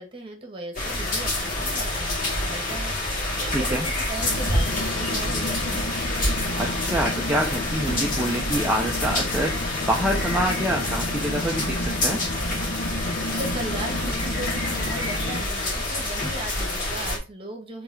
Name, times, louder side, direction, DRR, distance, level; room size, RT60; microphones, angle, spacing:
voice 1, 0.0-2.9 3.3-5.9 13.3-17.8, right 2 dB, 25° right, 3 dB, 1.7 m, -37 dB
sound 1, 0.7-17.2, left 1 dB, 45° left, 2.7 m, -27 dB
voice 2, 3.5-3.9 6.6-12.2, right 1 dB, 5° right, -2 dB, 0.7 m, -26 dB
sound 2, 4.2-15.4, left 1 dB, 65° left, 1.0 m, -32 dB
5.3 x 3.9 x 4.9 m, 0.31 s
head